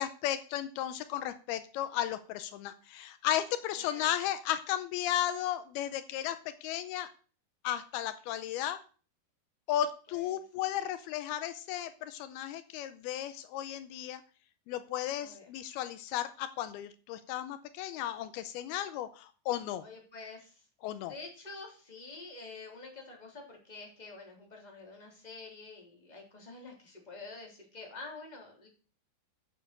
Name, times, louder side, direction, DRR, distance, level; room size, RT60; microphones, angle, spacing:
voice 1, 0.0-6.4 6.6-7.1 7.6-8.8 9.7-14.2 14.7-19.8 20.8-21.1, left 12 dB, 80° left, 11 dB, 2.6 m, -34 dB
voice 2, 3.7-4.1 10.1-10.3 15.2-15.5 19.8-20.6 21.0-28.7, left 3 dB, 10° left, 0 dB, 3.0 m, -48 dB
9.2 x 7.4 x 6.7 m, 0.38 s
omnidirectional pair, 4.4 m